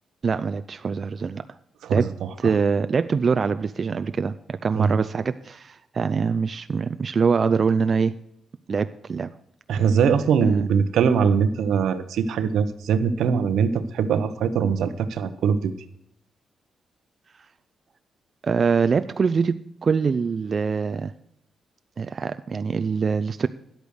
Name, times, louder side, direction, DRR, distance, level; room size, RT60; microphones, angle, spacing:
voice 1, 0.2-1.4 1.9-2.1 2.4-8.2 8.7-9.3 10.4-10.7 18.4-21.1 22.0-23.5, right 5 dB, 45° right, 11 dB, 0.5 m, -24 dB
voice 2, 9.7-15.7, right 6 dB, 85° right, 11 dB, 0.9 m, -22 dB
10.5 x 8.4 x 6.4 m, 0.74 s
cardioid pair, 80°, 0 cm